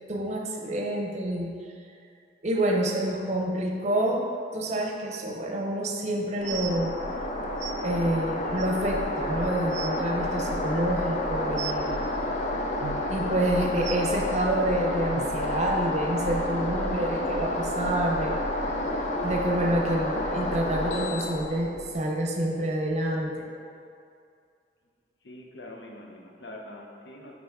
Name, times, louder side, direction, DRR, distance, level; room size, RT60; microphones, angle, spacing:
voice 1, 0.1-1.6 2.4-4.2 4.5-6.9 7.8-12.1 13.1-18.4 19.2-23.5, right 1 dB, 40° right, 1 dB, 0.7 m, -28 dB
sound 1, 6.4-21.9, left 1 dB, 40° left, 0.5 m, -30 dB
sound 2, 6.4-6.7 7.6-7.7 8.6-8.7 9.3-9.4 9.6-9.9 11.6-11.8 12.8-13.0 13.8-14.0 15.1-15.2 16.0-16.1 16.8-16.9, right 9 dB, 80° right, 0.4 m, -36 dB
voice 2, 25.2-27.3, left 1 dB, 75° left, 0 dB, 0.8 m, -44 dB
5.6 x 4.1 x 4.7 m, 2.4 s
head